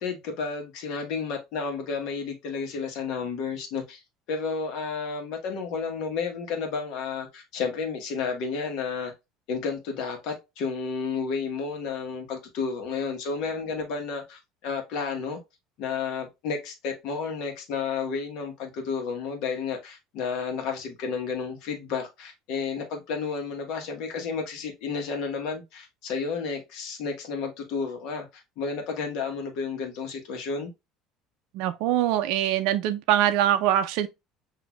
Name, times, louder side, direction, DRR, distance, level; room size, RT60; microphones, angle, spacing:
voice 1, 0.0-4.0 4.3-9.1 9.5-15.4 15.8-30.7, left 5 dB, 60° left, 1.2 m, -31 dB
voice 2, 31.5-34.1, right 12 dB, 65° right, 0.4 m, -23 dB
6.0 x 2.6 x 2.3 m
cardioid pair, 160°, 0 cm